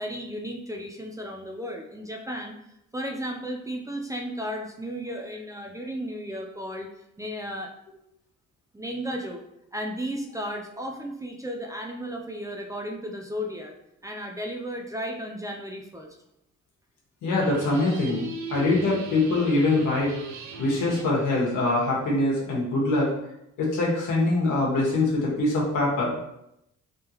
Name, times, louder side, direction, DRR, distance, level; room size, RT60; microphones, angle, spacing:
voice 1, 0.0-2.6 2.9-6.9 7.2-7.7 8.7-9.4 9.7-13.8 14.0-16.2, equal, 10° right, 1 dB, 0.5 m, -34 dB
voice 2, 17.2-20.1 20.6-23.1 23.6-26.1, left 2 dB, 80° left, -4 dB, 1.4 m, -23 dB
sound 1, 17.4-21.2, right 4 dB, 65° right, 0.6 m, -39 dB
3.6 x 3.3 x 2.9 m, 0.81 s
cardioid pair, 90°, 30 cm